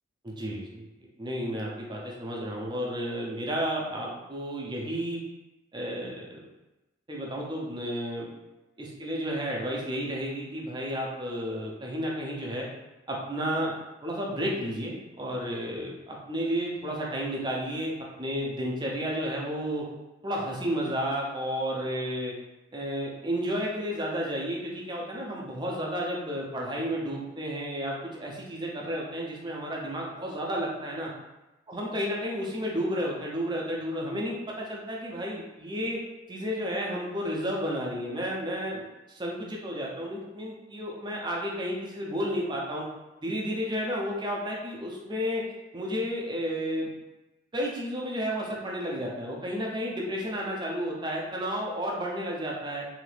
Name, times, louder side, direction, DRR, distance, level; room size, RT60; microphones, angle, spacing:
voice 1, 0.2-0.9 1.2-5.2 5.7-6.4 7.1-8.3 9.0-12.7 13.1-13.7 14.0-19.9 20.2-22.3 22.7-31.1 31.7-36.0 36.3-42.9 43.2-45.4 45.7-46.9 47.5-52.9, equal, 20° right, -3 dB, 0.6 m, -32 dB
2.7 x 2.5 x 3.3 m, 1.0 s
head